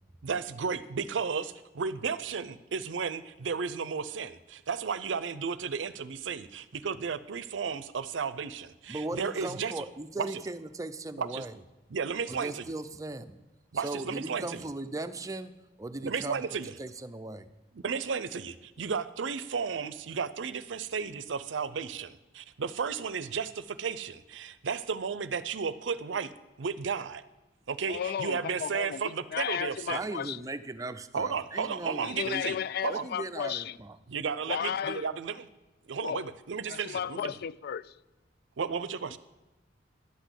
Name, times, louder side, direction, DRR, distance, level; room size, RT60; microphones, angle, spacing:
voice 1, 0.2-9.8 10.2-10.4 11.2-11.4 11.9-12.6 13.7-14.6 16.0-16.7 17.7-26.3 26.6-27.2 27.7-30.1 31.1-32.6 32.8-33.0 34.1-35.5 35.9-37.3 38.6-39.2, right 6 dB, 90° right, 0.6 m, -33 dB
voice 2, 8.9-11.6 12.3-13.4 13.7-15.5 15.8-16.4 16.8-17.5 29.9-32.4 32.9-34.0, right 2 dB, 20° right, 0.5 m, -38 dB
voice 3, 27.9-30.4 32.0-33.8 34.5-35.1 36.0-36.3 36.7-37.9, left 8 dB, 55° left, 0.3 m, -34 dB
11.0 x 6.1 x 8.1 m
head